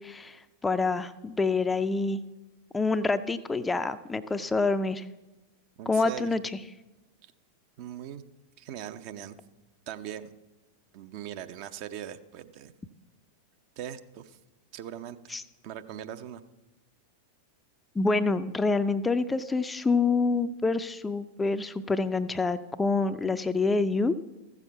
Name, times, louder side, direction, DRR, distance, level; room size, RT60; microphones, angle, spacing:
voice 1, 0.0-2.2 2.7-5.0 5.9-6.4 15.3-15.4 18.0-24.1, left 3 dB, 10° left, 11 dB, 0.4 m, -27 dB
voice 2, 5.8-6.3 7.8-8.2 8.6-9.4 9.9-10.3 10.9-12.7 13.8-14.4 14.7-15.4 15.6-16.4, right 10 dB, 45° right, 9 dB, 0.7 m, -40 dB
14.5 x 7.1 x 5.7 m, 1.1 s
figure-of-eight pair, 90°, 0 cm